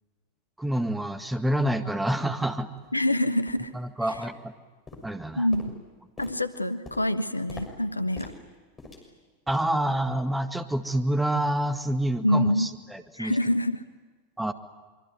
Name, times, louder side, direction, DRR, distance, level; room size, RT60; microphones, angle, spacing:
voice 1, 0.6-2.7 3.7-4.5 5.0-5.5 9.5-13.4 14.4-14.5, right 1 dB, 5° right, 8 dB, 1.9 m, -27 dB
sound 1, 1.5-1.6 2.1-2.2 2.8-2.9 3.5-3.8 4.1-4.6 4.9-9.8 10.1-10.4 10.7-10.9 11.5-11.6, left 2 dB, 20° left, 6.4 m, -46 dB
voice 2, 2.9-3.7 4.0-4.2 5.3-5.8 6.2-8.3 12.2-12.7 13.2-13.8, left 1 dB, 85° left, 12 dB, 1.1 m, -26 dB
25.0 x 24.0 x 9.5 m, 1.3 s
figure-of-eight pair, 90°, 0 cm